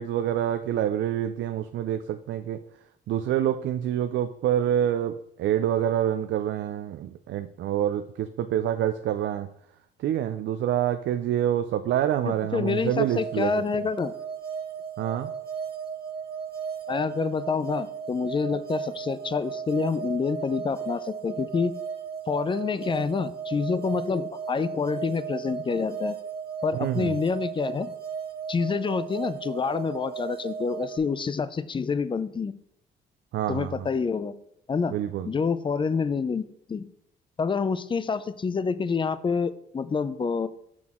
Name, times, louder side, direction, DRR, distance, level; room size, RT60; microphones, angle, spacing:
voice 1, 0.0-2.6 3.1-9.5 10.0-13.5 15.0-15.3 26.7-27.1 33.3-33.9 34.9-35.3, right 10 dB, 70° right, 9 dB, 0.4 m, -27 dB
voice 2, 12.2-14.1 16.9-21.7 22.3-26.2 26.6-27.9 28.5-32.5 33.5-34.3 34.7-34.9 35.2-36.4 36.7-36.8 37.4-40.5, left 5 dB, 25° left, 15 dB, 0.4 m, -27 dB
sound 1, 12.7-31.0, right 7 dB, 50° right, 1.8 m, -35 dB
6.1 x 5.9 x 3.7 m, 0.72 s
cardioid pair, 90°, 20 cm